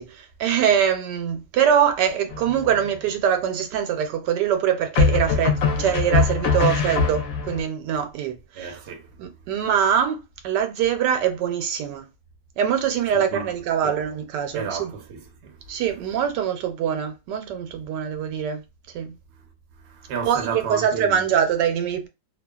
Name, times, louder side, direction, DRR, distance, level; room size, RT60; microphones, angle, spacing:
voice 1, 0.0-8.8 9.2-12.0 12.6-14.9 15.7-18.6 18.9-19.2 20.2-22.1, right 8 dB, 85° right, 1.2 m, -23 dB
sound 1, 2.3-2.9 4.9-7.6, left 5 dB, 65° left, 1.0 m, -22 dB
voice 2, 8.6-9.1 13.1-13.5 13.8-13.9 14.5-15.6 19.8-21.2, right 5 dB, 60° right, 0.7 m, -32 dB
2.8 x 2.2 x 2.3 m
omnidirectional pair, 1.8 m